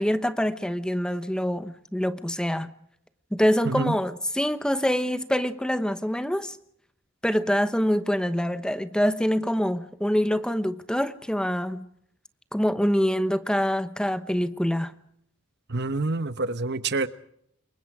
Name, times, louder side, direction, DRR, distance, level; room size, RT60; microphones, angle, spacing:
voice 1, 0.0-2.7 3.3-6.6 7.2-11.9 12.5-14.9, equal, 5° left, 1.0 m, -25 dB
voice 2, 15.7-17.1, right 3 dB, 55° right, 1.1 m, -27 dB
28.5 x 23.0 x 4.9 m
head